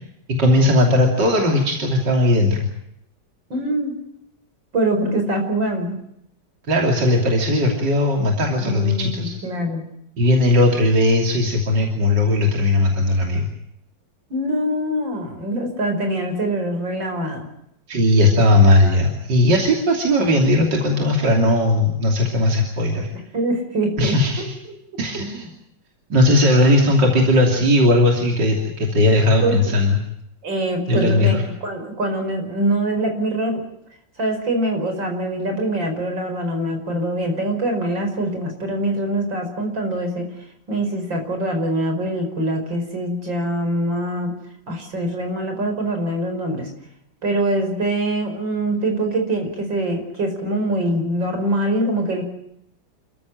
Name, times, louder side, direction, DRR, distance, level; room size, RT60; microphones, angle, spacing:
voice 1, 0.4-2.7 6.7-9.4 10.2-13.5 17.9-23.1 24.0-24.5 25.0-25.5 26.1-30.0 30.9-31.4, left 1 dB, 70° right, 0 dB, 3.6 m, -17 dB
voice 2, 3.5-3.9 4.7-6.0 8.6-9.8 14.3-17.5 23.1-24.2 29.4-29.6 30.4-33.6 34.2-40.3 40.7-44.3 44.7-46.7 47.2-52.2, right 1 dB, 90° right, 4 dB, 5.8 m, -24 dB
29.0 x 14.0 x 9.2 m, 0.78 s
omnidirectional pair, 2.0 m